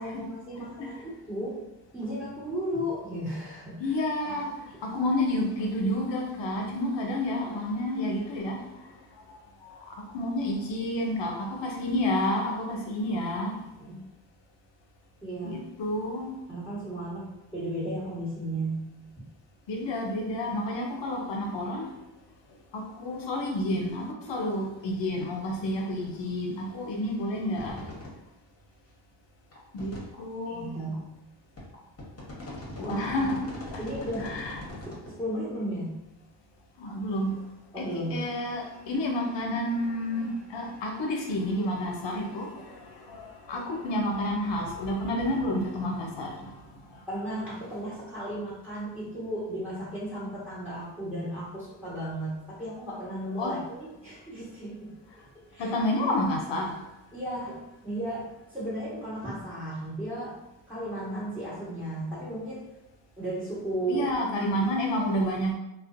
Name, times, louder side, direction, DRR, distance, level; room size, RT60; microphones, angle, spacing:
voice 1, 0.0-1.7 1.9-4.0 4.2-4.6 13.8-14.0 15.2-15.7 16.5-19.3 30.5-31.1 32.8-33.0 33.8-34.4 34.7-36.0 37.7-38.2 47.1-54.9 55.5-55.7 57.1-60.4 60.7-62.7 63.2-64.1 64.4-64.7, right 1 dB, 5° right, -10 dB, 1.3 m, -35 dB
voice 2, 3.8-4.5 4.8-8.6 9.6-13.6 15.4-16.3 19.7-21.8 22.7-27.8 29.7-30.7 32.8-33.8 34.2-34.6 36.8-37.4 37.8-46.6 53.4-53.5 55.6-56.8 63.9-65.5, left 1 dB, 65° left, 1 dB, 0.6 m, -30 dB
sound 1, 27.6-28.1 28.6-28.7 29.5-30.2 30.9-31.0 31.6-35.1, left 1 dB, 30° left, 1.0 m, -40 dB
2.4 x 2.1 x 2.5 m, 0.92 s
cardioid pair, 50°, 47 cm